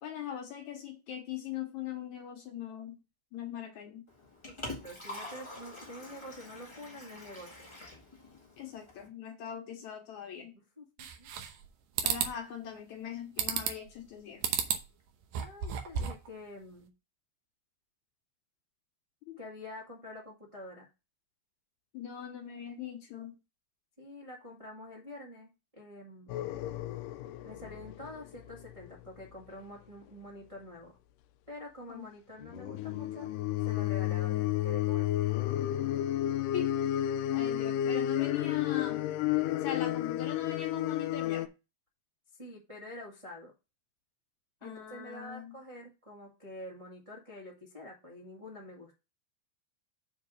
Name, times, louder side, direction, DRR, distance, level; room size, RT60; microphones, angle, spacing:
voice 1, 0.0-3.0 3.3-4.0 8.6-10.5 12.0-14.5 19.2-19.4 21.9-23.4 31.9-32.1 36.5-36.7 37.3-39.0 39.6-41.5 44.6-45.5, left 9 dB, 65° left, 2.2 m, -41 dB
Liquid, 4.1-9.1, left 1 dB, 25° left, 0.6 m, -46 dB
voice 2, 4.5-7.7 10.5-11.3 15.3-16.9 19.4-20.9 24.0-26.4 27.4-30.9 31.5-33.3 33.6-35.3 42.4-43.5 44.6-49.0, left 1 dB, 25° right, 0.7 m, -47 dB
sound 1, 11.0-11.7 12.0-12.3 13.4-13.9 14.4-14.8 15.2-16.3, right 8 dB, 75° right, 2.5 m, -32 dB
sound 2, 26.3-29.3 32.4-41.5, left 13 dB, 80° left, 1.9 m, -32 dB
7.0 x 3.8 x 6.4 m
omnidirectional pair, 4.1 m